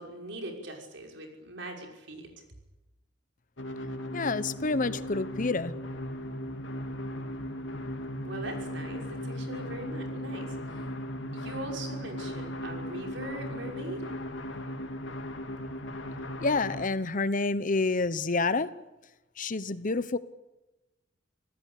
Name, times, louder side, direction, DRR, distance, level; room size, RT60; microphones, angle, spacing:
voice 1, 0.0-2.3 8.2-10.9 11.3-14.0, right 1 dB, 70° right, 2 dB, 6.0 m, -41 dB
sound 1, 3.6-16.9, equal, 75° left, 3.1 m, -37 dB
voice 2, 4.1-5.7 16.4-18.7 19.4-20.2, left 3 dB, 45° left, 15 dB, 1.0 m, -28 dB
26.5 x 18.0 x 8.5 m, 1.0 s
head